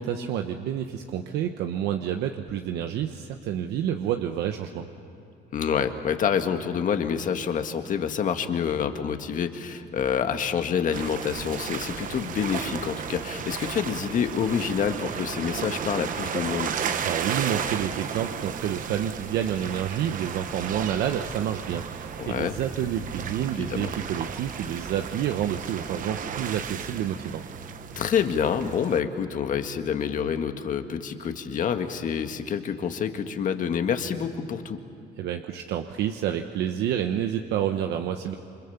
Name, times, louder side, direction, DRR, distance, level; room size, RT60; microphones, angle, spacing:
voice 1, 0.0-4.9 17.0-27.4 35.2-38.4, right 10 dB, 80° right, 5 dB, 1.1 m, -29 dB
voice 2, 5.5-16.7 22.2-22.6 23.7-23.9 28.0-34.8, left 7 dB, 50° left, 7 dB, 1.8 m, -27 dB
sound 1, 10.9-29.0, right 7 dB, 50° right, 1.3 m, -34 dB
28.0 x 25.0 x 7.3 m, 2.6 s
cardioid pair, 110°, 17 cm